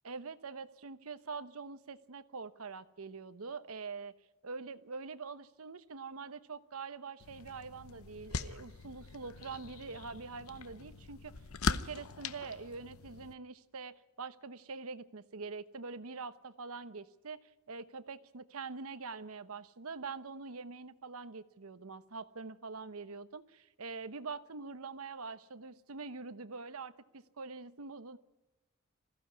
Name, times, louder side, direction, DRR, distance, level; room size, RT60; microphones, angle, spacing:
voice 1, 0.0-4.1 4.4-11.3 11.7-26.9 27.4-28.2, right 4 dB, 85° right, 13 dB, 1.0 m, -44 dB
sound 1, 7.2-13.3, left 4 dB, 80° left, 0.9 m, -41 dB
21.0 x 15.0 x 9.6 m, 1.1 s
head